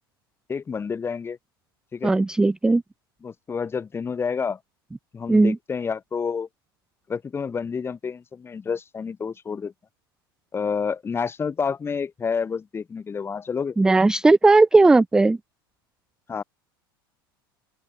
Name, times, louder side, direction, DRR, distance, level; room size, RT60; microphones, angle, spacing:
voice 1, 0.5-1.4 1.9-2.2 3.2-4.6 5.1-6.5 7.1-9.7 10.5-13.8 16.3-16.4, left 6 dB, 20° left, 1.5 m, -29 dB
voice 2, 2.0-2.8 5.3-5.6 13.8-15.4, right 3 dB, 5° right, 0.3 m, -17 dB
open air
figure-of-eight pair, 80°, 13 cm